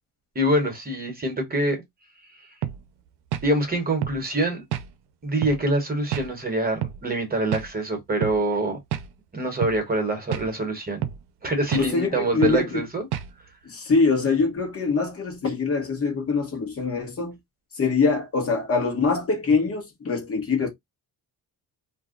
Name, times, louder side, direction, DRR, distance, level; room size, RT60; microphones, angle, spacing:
voice 1, 0.3-1.8 3.4-4.6 5.2-8.8 9.3-11.0 11.4-13.1, right 1 dB, 25° right, 1.2 m, -25 dB
sound 1, 2.6-2.8 3.3-3.5 4.0-4.2 4.7-4.9 5.4-5.6 6.1-6.3 6.8-7.0 7.5-7.7 8.2-8.4 8.9-9.1 9.6-9.8 10.3-10.5 11.0-11.2 11.7-11.9 12.4-12.6 13.1-13.3, right 11 dB, 85° right, 0.6 m, -29 dB
voice 2, 11.8-12.8 13.7-17.4 17.8-20.7, left 4 dB, 35° left, 1.1 m, -23 dB
2.6 x 2.3 x 3.7 m
cardioid pair, 130°, 38 cm